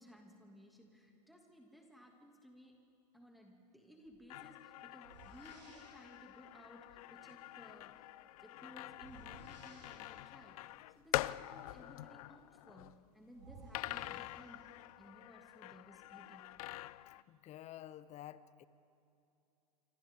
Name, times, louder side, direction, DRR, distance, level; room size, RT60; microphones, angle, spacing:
voice 1, 0.0-2.8 3.1-8.1 8.4-14.6 15.0-16.5, equal, ahead, 0 dB, 2.5 m, -59 dB
sound 1, 4.1-4.2 5.0-6.2 8.9-10.5 12.8-12.9 13.3-14.9, right 3 dB, 85° right, 3.9 m, -58 dB
sound 2, 4.3-13.0 13.7-17.2, left 17 dB, 60° left, 0.5 m, -45 dB
voice 2, 17.3-18.7, left 12 dB, 35° left, 16 dB, 0.8 m, -50 dB
27.5 x 25.5 x 3.8 m, 2.7 s
hypercardioid pair, 105°, 21 cm